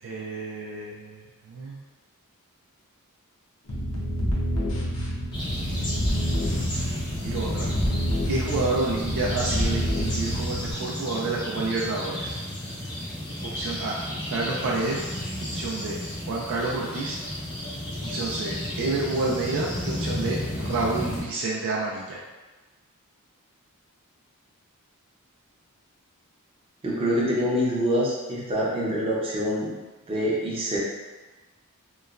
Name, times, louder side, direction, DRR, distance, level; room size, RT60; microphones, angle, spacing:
voice 1, 0.0-1.2 1.5-1.8 7.2-7.7 8.3-12.4 13.4-14.0 14.3-15.1 15.4-16.0 16.3-17.2 18.0-22.2, right 3 dB, 60° right, -3 dB, 0.4 m, -29 dB
sound 1, 3.7-10.7, equal, 70° left, 0.7 m, -28 dB
sound 2, 5.3-21.2, left 1 dB, 20° left, 0.6 m, -33 dB
voice 2, 26.8-29.7 30.1-30.8, equal, 25° right, -6 dB, 0.6 m, -25 dB
3.0 x 2.1 x 2.4 m, 1.2 s
head